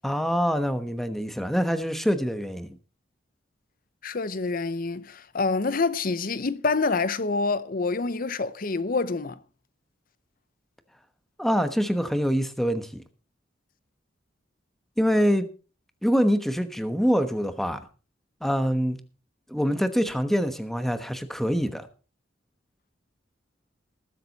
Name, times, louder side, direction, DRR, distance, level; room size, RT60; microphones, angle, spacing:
voice 1, 0.0-2.7 11.4-13.0 15.0-15.5 16.0-17.8 18.4-19.0 19.5-21.9, equal, ahead, 1.1 m, -25 dB
voice 2, 4.0-9.4, left 3 dB, 50° left, 0.8 m, -27 dB
20.0 x 7.7 x 4.1 m
head